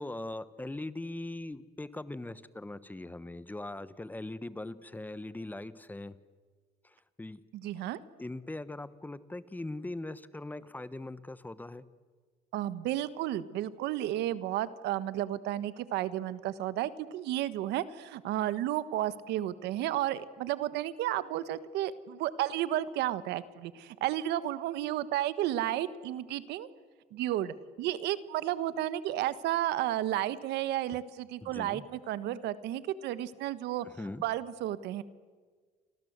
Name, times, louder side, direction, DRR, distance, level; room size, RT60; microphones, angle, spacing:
voice 1, 0.0-6.2 6.8-7.4 8.2-11.8 31.4-31.8 33.8-34.2, left 2 dB, 10° left, 16 dB, 1.2 m, -41 dB
voice 2, 7.5-8.0 12.5-26.7 27.1-33.8 34.2-35.0, right 13 dB, 85° right, 15 dB, 1.3 m, -32 dB
29.5 x 25.0 x 8.1 m, 1.5 s
cardioid pair, 110°, 17 cm